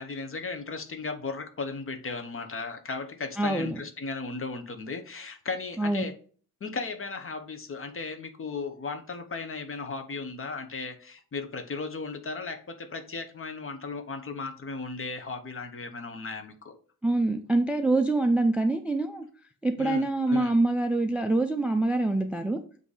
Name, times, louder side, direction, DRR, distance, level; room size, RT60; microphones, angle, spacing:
voice 1, 0.0-6.2 6.6-16.8 19.8-20.5, left 4 dB, 35° left, 8 dB, 0.8 m, -36 dB
voice 2, 3.4-3.8 5.8-6.0 17.0-19.2 19.6-22.6, right 2 dB, 5° right, 6 dB, 0.3 m, -25 dB
7.6 x 2.7 x 4.8 m, 0.43 s
wide cardioid pair, 160°, 36 cm